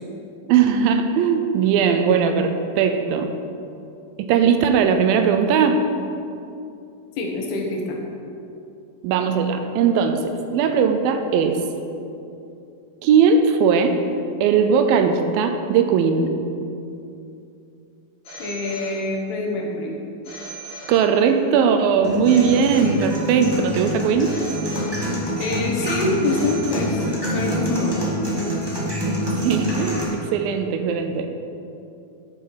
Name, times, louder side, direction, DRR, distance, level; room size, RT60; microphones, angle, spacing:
voice 1, 0.4-3.3 4.2-5.8 9.0-11.6 13.0-14.0 14.4-16.3 20.9-24.4 29.4-31.3, right 6 dB, 80° right, 6 dB, 2.3 m, -19 dB
voice 2, 7.2-8.0 18.4-20.0 25.4-28.2, left 2 dB, 90° left, 0 dB, 3.3 m, -25 dB
Telephone, 18.2-19.5 20.2-21.5 22.2-23.5 24.2-25.5 26.2-27.5, right 2 dB, 35° left, 1.5 m, -39 dB
sound 1, 22.0-30.0, equal, 40° right, 0.3 m, -26 dB
11.0 x 6.4 x 5.6 m, 2.7 s
omnidirectional pair, 4.4 m